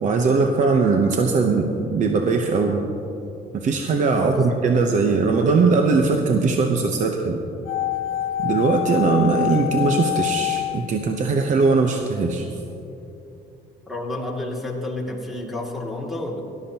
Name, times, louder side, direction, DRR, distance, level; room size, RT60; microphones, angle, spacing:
voice 1, 0.0-2.8 3.5-7.4 8.4-12.5, right 4 dB, 45° right, 3 dB, 0.9 m, -20 dB
voice 2, 4.2-4.5 13.9-16.4, left 2 dB, ahead, -2 dB, 2.4 m, -30 dB
sound 1, 7.7-11.8 12.0-12.1, left 16 dB, 65° left, 1.2 m, -26 dB
17.5 x 12.5 x 2.9 m, 2.9 s
cardioid pair, 110°, 17 cm